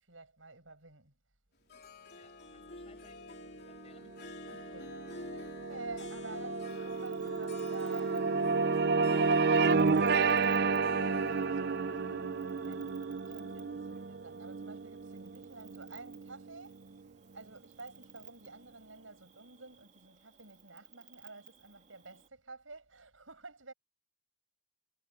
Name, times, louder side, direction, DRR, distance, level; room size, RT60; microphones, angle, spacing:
voice 1, 0.1-1.1 2.8-2.9 4.5-9.3 9.6-12.0 12.6-12.9 13.2-16.8 17.3-23.7, right 3 dB, 85° right, 7.9 m, -50 dB
Harp, 1.7-13.9, left 2 dB, 55° left, 3.6 m, -49 dB
voice 2, 2.1-4.6, left 3 dB, 35° left, 5.7 m, -64 dB
sound 1, 4.0-16.5, right 4 dB, 60° right, 0.7 m, -31 dB
Cricket, 6.7-22.3, right 9 dB, 40° right, 2.5 m, -60 dB
head